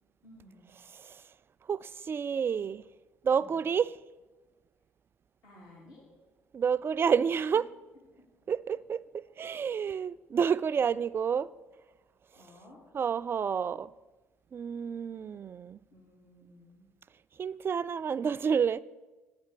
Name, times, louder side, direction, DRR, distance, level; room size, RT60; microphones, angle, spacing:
voice 1, 0.2-0.7 3.3-3.6 5.4-6.0 7.5-7.6 8.1-8.2 12.3-12.8 15.9-16.8, left 1 dB, 70° left, 3.1 m, -55 dB
voice 2, 0.9-1.2 1.6-2.9 3.2-4.0 6.5-7.6 8.5-11.5 12.9-13.9 14.5-15.8 17.4-18.8, right 7 dB, 40° right, 0.4 m, -29 dB
8.9 x 7.5 x 7.0 m
hypercardioid pair, 55°, 6 cm